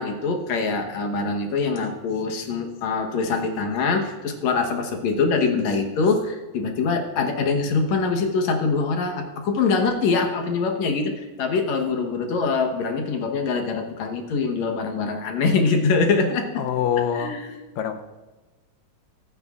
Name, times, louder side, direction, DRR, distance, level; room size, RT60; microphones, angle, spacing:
voice 1, 0.0-16.6 17.1-17.5, left 4 dB, 65° left, 3 dB, 2.2 m, -24 dB
voice 2, 16.6-17.4 17.8-18.0, left 9 dB, 80° left, 7 dB, 2.3 m, -24 dB
23.0 x 9.7 x 2.5 m, 1.2 s
omnidirectional pair, 4.0 m